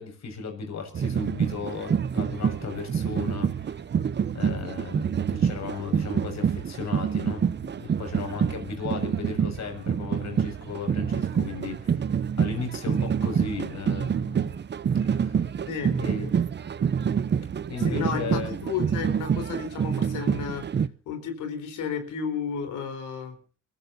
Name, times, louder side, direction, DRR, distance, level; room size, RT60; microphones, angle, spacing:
voice 1, 0.0-3.9 4.3-7.5 7.8-12.1 12.4-14.6 15.0-15.5 16.0-16.3 17.7-18.6, left 5 dB, 65° left, 5 dB, 6.5 m, -36 dB
sound 1, 0.9-20.9, right 7 dB, 35° right, 0.7 m, -27 dB
voice 2, 15.7-16.0 17.8-20.7 21.1-23.4, left 6 dB, 85° left, 7 dB, 4.1 m, -32 dB
29.5 x 15.5 x 2.7 m, 0.37 s
cardioid pair, 90°, 30 cm